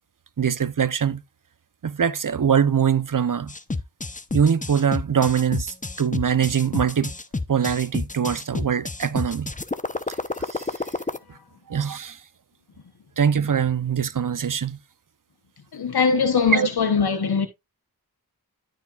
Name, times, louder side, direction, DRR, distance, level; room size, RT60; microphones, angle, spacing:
voice 1, 0.4-1.2 1.8-3.5 4.3-7.1 7.5-9.5 10.1-10.9 11.7-12.2 13.2-14.8 16.5-16.7, right 7 dB, 60° right, 0.8 m, -23 dB
sound 1, 3.5-11.2, left 3 dB, 20° left, 0.8 m, -29 dB
voice 2, 15.7-17.5, left 5 dB, 85° left, 1.1 m, -21 dB
13.0 x 5.3 x 2.4 m
wide cardioid pair, 50°, 37 cm